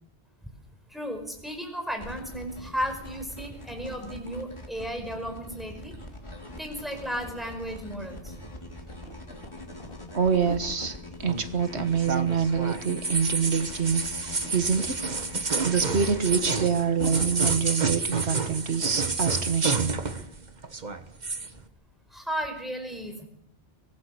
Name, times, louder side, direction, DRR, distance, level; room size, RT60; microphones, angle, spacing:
voice 1, 0.9-5.9 6.6-8.3 22.1-23.3, equal, ahead, 4 dB, 5.2 m, -34 dB
sound 1, 2.0-16.4, left 1 dB, 25° left, 3.5 m, -43 dB
sound 2, 7.3-8.4 8.8-11.0 11.4-12.1 12.4-13.2 13.5-13.7 14.1-17.4, left 2 dB, 55° left, 3.7 m, -42 dB
voice 2, 10.1-11.0 11.2-15.0 15.6-19.9, right 6 dB, 75° right, 9 dB, 1.6 m, -26 dB
sound 3, 11.3-20.4 20.6-21.5, right 4 dB, 40° right, 1.6 m, -29 dB
24.0 x 19.0 x 6.8 m, 0.73 s
omnidirectional pair, 1.1 m